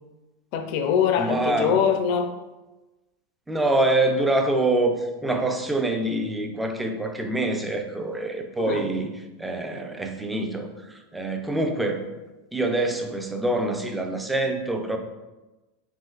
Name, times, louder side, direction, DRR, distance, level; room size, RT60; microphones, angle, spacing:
voice 1, 0.5-2.3 8.6-8.9, left 7 dB, 50° left, 7 dB, 0.4 m, -23 dB
voice 2, 1.2-1.8 3.5-9.1 9.4-12.0 12.5-15.0, right 2 dB, 5° right, 4 dB, 0.4 m, -25 dB
4.9 x 3.1 x 2.4 m, 1.1 s
supercardioid pair, 145°, 0 cm